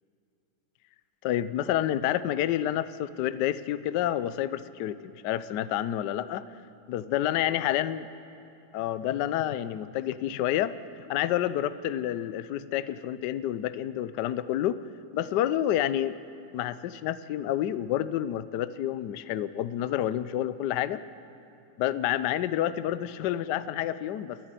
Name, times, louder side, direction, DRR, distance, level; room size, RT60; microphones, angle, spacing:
voice 1, 1.2-6.4 6.9-8.0 8.7-14.8 15.1-16.1 16.5-21.0 21.8-24.4, left 12 dB, 70° left, 14 dB, 1.0 m, -29 dB
30.0 x 11.0 x 9.1 m, 2.8 s
omnidirectional pair, 2.4 m